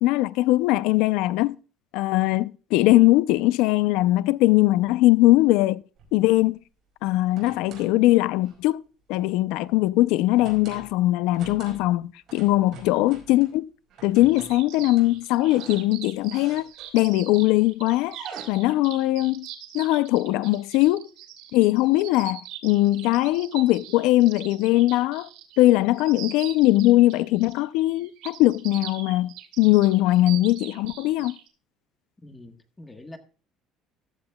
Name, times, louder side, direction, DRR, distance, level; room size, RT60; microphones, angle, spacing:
voice 1, 0.0-1.6 1.9-5.8 6.1-6.6 7.0-8.8 9.1-13.7 14.0-16.6 16.9-18.2 18.5-19.5 19.7-21.1 21.5-25.3 25.6-31.3, left 17 dB, 80° left, 0.5 m, -20 dB
sound 1, 6.0-6.4 7.0-8.0 8.4-8.7 10.3-10.9 11.3-12.0 12.3-13.5 13.9-17.2 18.0-18.4, right 6 dB, 45° right, 5.4 m, -45 dB
sound 2, 14.2-31.5, right 12 dB, 90° right, 2.2 m, -42 dB
voice 2, 32.2-33.2, left 1 dB, 10° left, 1.3 m, -44 dB
14.5 x 12.5 x 2.3 m
cardioid pair, 155°, 0 cm